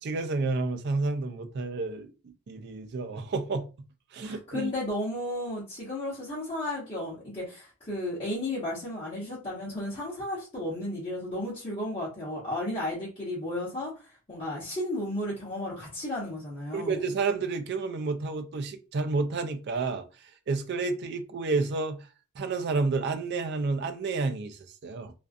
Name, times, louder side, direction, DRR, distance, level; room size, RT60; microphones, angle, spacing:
voice 1, 0.0-2.1 2.5-3.7 4.1-4.7 16.7-22.1 22.4-25.1, right 3 dB, 50° right, 0.4 m, -30 dB
voice 2, 4.2-17.1, left 1 dB, 25° left, 1.0 m, -34 dB
2.4 x 2.2 x 2.4 m
head